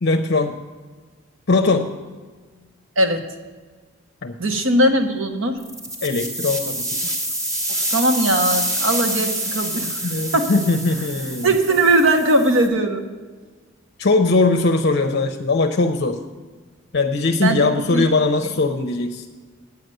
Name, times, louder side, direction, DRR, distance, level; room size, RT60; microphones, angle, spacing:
voice 1, 0.0-0.6 1.5-1.9 4.2-4.3 6.0-7.1 10.0-11.5 14.0-16.2 16.9-19.2, left 3 dB, 55° left, 5 dB, 0.6 m, -20 dB
voice 2, 4.4-5.6 7.7-10.5 11.4-13.0 17.4-18.1, right 1 dB, 70° right, 5 dB, 1.2 m, -19 dB
sound 1, 5.6-12.7, right 1 dB, 15° right, 1.1 m, -27 dB
9.2 x 8.4 x 6.5 m, 1.4 s
head